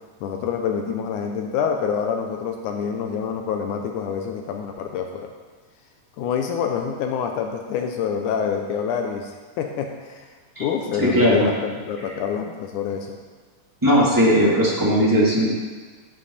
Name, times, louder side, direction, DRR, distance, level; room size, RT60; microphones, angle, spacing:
voice 1, 0.2-5.3 6.2-10.3 10.6-13.2, left 7 dB, 80° left, 4 dB, 2.0 m, -26 dB
voice 2, 11.0-11.5 13.8-15.5, equal, 20° right, -6 dB, 0.5 m, -18 dB
11.0 x 7.6 x 4.2 m, 1.4 s
omnidirectional pair, 3.9 m